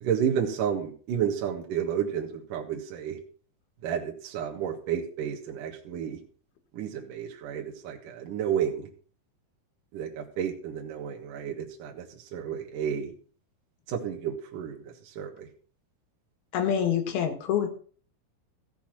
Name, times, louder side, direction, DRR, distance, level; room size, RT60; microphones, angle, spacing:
voice 1, 0.0-3.2 3.8-6.2 6.7-8.9 9.9-12.1 12.3-13.1 13.9-14.8 15.1-15.5, right 8 dB, 65° right, 0 dB, 2.9 m, -31 dB
voice 2, 16.5-17.7, left 9 dB, 80° left, 7 dB, 3.5 m, -26 dB
15.0 x 7.0 x 6.0 m, 0.43 s
omnidirectional pair, 4.4 m